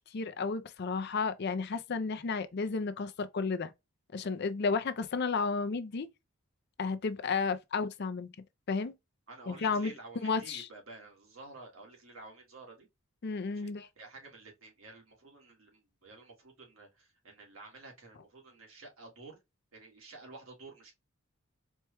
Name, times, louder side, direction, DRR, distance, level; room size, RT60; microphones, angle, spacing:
voice 1, 0.1-3.7 4.1-6.1 6.8-8.3 8.7-8.9 9.5-9.9 10.2-10.7 13.2-13.9, left 4 dB, 50° left, 0.5 m, -32 dB
voice 2, 9.3-12.9 13.5-19.4 19.7-20.9, right 3 dB, 75° right, 1.6 m, -51 dB
4.4 x 2.3 x 2.9 m
head